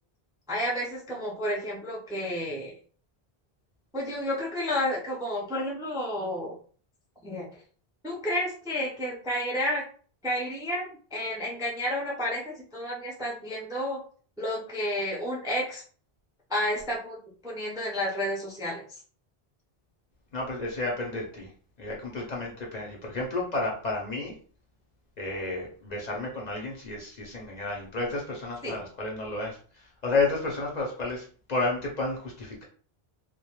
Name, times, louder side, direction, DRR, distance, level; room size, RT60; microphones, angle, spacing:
voice 1, 0.5-2.7 3.9-6.6 7.2-7.5 8.0-9.8 10.2-14.0 14.4-15.8 16.5-17.2 17.4-19.0 28.6-28.8, left 1 dB, 5° right, -3 dB, 0.4 m, -31 dB
voice 2, 20.3-21.5 21.8-24.3 25.2-32.6, left 2 dB, 50° left, -2 dB, 0.6 m, -31 dB
2.2 x 2.1 x 2.8 m, 0.43 s
omnidirectional pair, 1.0 m